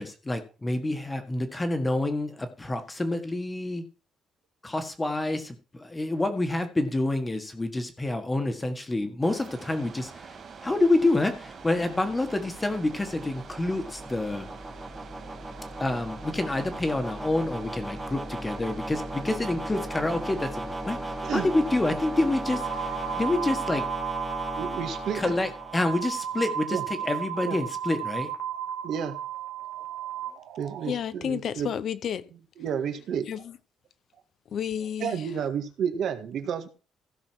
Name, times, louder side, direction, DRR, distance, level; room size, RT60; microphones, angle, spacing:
voice 1, 0.0-3.8 4.6-14.5 15.8-23.9 25.1-28.3, left 2 dB, 15° left, 1.6 m, -28 dB
sound 1, 9.2-23.3, right 6 dB, 35° right, 3.1 m, -46 dB
sound 2, 10.2-26.4, right 1 dB, 10° right, 1.3 m, -37 dB
sound 3, 22.5-30.9, right 9 dB, 80° right, 1.5 m, -34 dB
voice 2, 24.5-25.3 26.7-26.8 27.4-27.6 28.8-29.2 30.6-31.7 32.6-33.3 35.0-36.7, right 8 dB, 60° right, 1.7 m, -31 dB
voice 3, 30.8-32.3 33.3-33.5 34.5-35.3, left 8 dB, 50° left, 0.6 m, -31 dB
15.5 x 6.2 x 4.6 m
cardioid pair, 155°, 0 cm